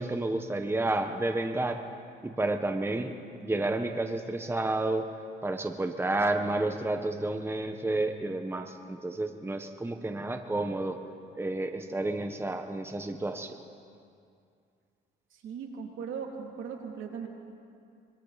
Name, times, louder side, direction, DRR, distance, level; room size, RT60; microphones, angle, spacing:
voice 1, 0.0-1.8 2.2-3.1 3.4-5.1 5.4-11.0 11.3-13.6, right 2 dB, 10° right, 6 dB, 1.3 m, -30 dB
voice 2, 15.3-17.3, right 6 dB, 80° right, 1 dB, 3.0 m, -38 dB
25.5 x 24.5 x 4.2 m, 2.4 s
cardioid pair, 90°, 20 cm